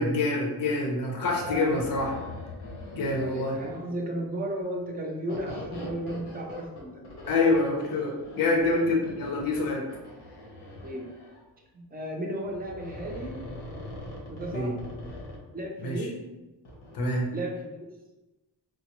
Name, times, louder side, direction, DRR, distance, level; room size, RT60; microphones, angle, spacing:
voice 1, 0.0-2.1 2.9-3.6 7.3-9.8 14.5-14.7 15.8-16.1 16.9-17.3, left 2 dB, 55° left, 0 dB, 0.7 m, -26 dB
sound 1, 1.2-3.9 5.3-11.4 12.4-15.4 16.6-17.0, left 1 dB, 85° left, 1.1 m, -42 dB
voice 2, 1.4-1.8 3.1-7.0 10.8-11.1 11.7-13.4 14.3-14.8 15.5-16.2 17.3-17.7, right 1 dB, 20° right, 0 dB, 0.6 m, -34 dB
4.6 x 2.0 x 3.0 m, 1.1 s
wide cardioid pair, 145°, 41 cm